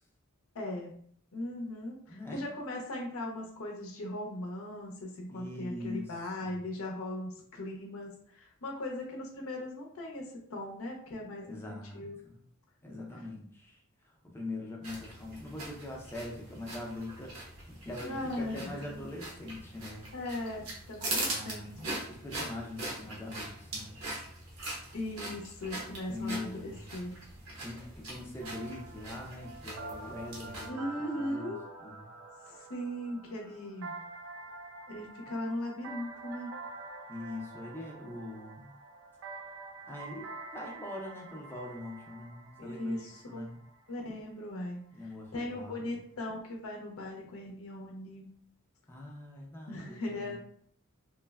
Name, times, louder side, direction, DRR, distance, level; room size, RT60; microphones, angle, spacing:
voice 1, 0.5-0.9 1.3-12.2 18.0-19.1 20.1-21.7 24.9-27.1 27.5-27.6 30.6-31.6 32.5-33.9 34.9-36.5 42.6-43.5 43.9-44.8 45.3-48.4 49.7-50.4, left 1 dB, 80° left, 0 dB, 0.6 m, -39 dB
voice 2, 2.1-2.5 5.3-6.2 6.4-6.6 11.4-12.4 12.8-20.1 21.1-24.0 26.1-26.8 27.6-30.9 31.2-31.5 31.8-32.1 37.1-38.7 39.9-43.6 44.9-46.0 48.9-50.4, left 2 dB, 10° left, -1 dB, 0.5 m, -43 dB
sound 1, 14.8-30.7, right 2 dB, 85° right, 0.8 m, -41 dB
sound 2, 28.4-44.1, right 3 dB, 65° right, 0.3 m, -47 dB
3.1 x 2.0 x 2.3 m, 0.63 s
head